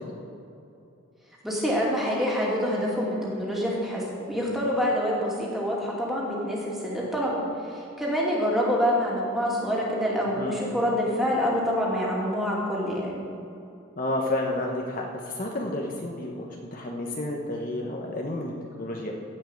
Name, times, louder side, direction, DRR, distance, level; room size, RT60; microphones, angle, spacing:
voice 1, 1.4-4.0 4.3-13.1, equal, ahead, -5 dB, 2.5 m, -26 dB
voice 2, 14.0-18.5 18.8-19.1, left 1 dB, 40° left, 0 dB, 1.1 m, -31 dB
16.5 x 5.6 x 7.8 m, 2.6 s
head